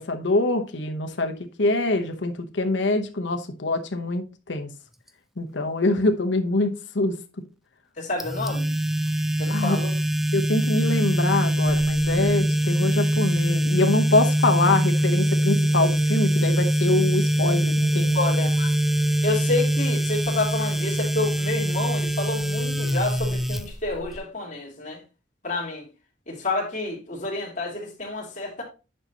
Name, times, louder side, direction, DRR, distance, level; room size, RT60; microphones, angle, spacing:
voice 1, 0.0-1.3 1.6-4.7 5.4-7.1 9.5-9.8 10.3-18.2, left 2 dB, 70° left, 0.9 m, -24 dB
voice 2, 8.0-8.7 9.4-10.0 18.1-18.7 19.2-25.0 25.4-25.9 26.3-28.6, left 2 dB, 40° left, 2.7 m, -29 dB
sound 1, 8.2-24.2, right 1 dB, ahead, 0.3 m, -23 dB
8.7 x 5.5 x 2.9 m
head